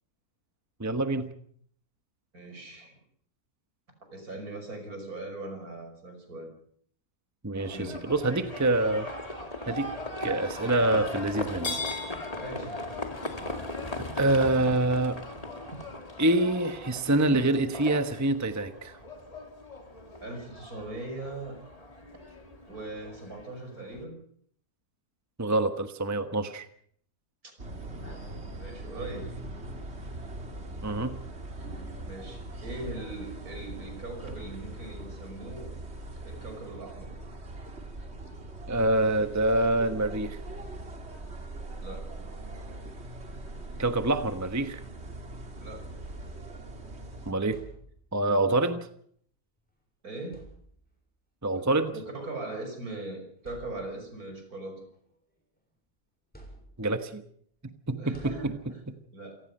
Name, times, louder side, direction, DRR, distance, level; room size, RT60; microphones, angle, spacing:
voice 1, 0.8-1.3 7.4-7.8 8.0-9.1 9.7-9.9 10.2-11.8 14.0-15.2 16.2-19.0 25.4-26.7 30.8-31.2 38.7-40.4 43.8-44.8 47.2-47.6 48.1-48.9 51.4-51.9 56.8-57.2 57.6-58.5 58.9-59.0, right 2 dB, 10° right, 8 dB, 1.1 m, -26 dB
voice 2, 2.3-3.0 4.1-6.5 7.6-8.0 12.4-12.8 20.2-21.6 22.7-24.2 28.0-29.3 32.1-35.8 36.2-37.1 41.8-42.2 45.6-45.9 50.0-50.4 51.9-54.8 58.0-58.8 59.1-59.4, right 2 dB, 65° right, 5 dB, 6.1 m, -40 dB
Livestock farm animals working animals, 7.6-24.0, left 2 dB, 25° left, 2.4 m, -38 dB
sound 1, 27.6-47.3, right 2 dB, 40° right, 2.7 m, -41 dB
sound 2, 47.5-48.3 49.6-49.7 50.2-51.1 52.2-52.3 52.9-53.0 53.4-54.2 54.7-55.8 56.3-57.1 58.1-59.0, right 1 dB, 5° left, 7.3 m, -51 dB
28.0 x 18.0 x 5.6 m, 0.62 s
omnidirectional pair, 1.6 m